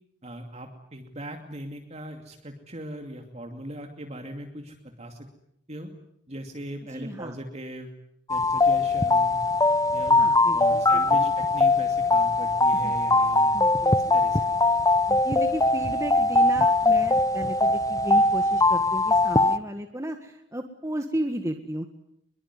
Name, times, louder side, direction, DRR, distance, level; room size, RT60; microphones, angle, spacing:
voice 1, 0.2-5.3 5.7-5.9 6.3-7.9 8.3-9.4 9.9-10.2 10.5-13.6 13.9-14.5, right 1 dB, 35° right, 4 dB, 2.6 m, -39 dB
voice 2, 6.9-7.4 10.2-11.2 12.7-12.9 13.5-14.2 15.1-21.9, right 1 dB, 15° right, 5 dB, 1.7 m, -34 dB
sound 1, 8.3-19.6, left 2 dB, 20° left, 1.0 m, -21 dB
24.5 x 22.5 x 9.7 m, 0.74 s
head